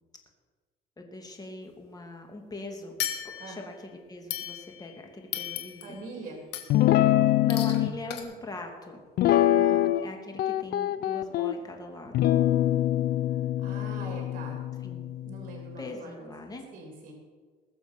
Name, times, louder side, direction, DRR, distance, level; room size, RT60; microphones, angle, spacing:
voice 1, 1.0-3.0 3.2-6.0 7.2-9.0 10.0-12.3 14.8-15.1 15.8-16.6, left 2 dB, 20° left, 2 dB, 2.6 m, -41 dB
sound 1, 3.0-3.7 4.3-4.9 5.3-6.0 6.5-6.9 7.5-7.8 8.1-8.2, left 11 dB, 85° left, 1.7 m, -36 dB
voice 2, 5.8-6.4 9.5-9.9 13.2-14.6 15.2-16.3 16.7-17.1, right 3 dB, 55° right, 1 dB, 3.2 m, -43 dB
Guitar, 6.7-7.9 9.2-10.1 10.4-11.5 12.1-15.6, left 13 dB, 65° left, 0.6 m, -24 dB
20.0 x 7.0 x 6.0 m, 1.4 s
cardioid pair, 110°, 17 cm